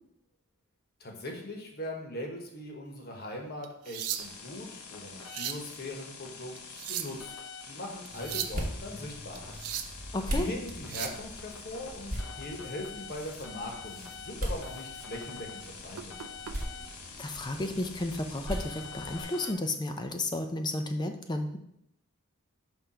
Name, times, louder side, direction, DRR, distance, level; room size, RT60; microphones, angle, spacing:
voice 1, 1.0-7.3 7.6-9.6 10.3-15.5 15.8-16.1, left 1 dB, 45° left, 1 dB, 1.1 m, -40 dB
sound 1, 3.6-4.5 5.1-5.7 6.6-7.3 8.1-8.6 9.3-10.0 10.7-11.2 13.3-13.4 14.0-14.2 14.6-14.8 15.9-16.5 17.6-17.8, right 10 dB, 90° right, 0.5 m, -37 dB
sound 2, 4.1-19.5, left 5 dB, 85° left, 0.9 m, -45 dB
sound 3, 8.1-19.2, equal, 40° right, 1.0 m, -40 dB
voice 2, 10.1-10.5 17.2-21.6, left 2 dB, 20° left, 6 dB, 0.5 m, -32 dB
5.7 x 3.4 x 5.0 m, 0.75 s
head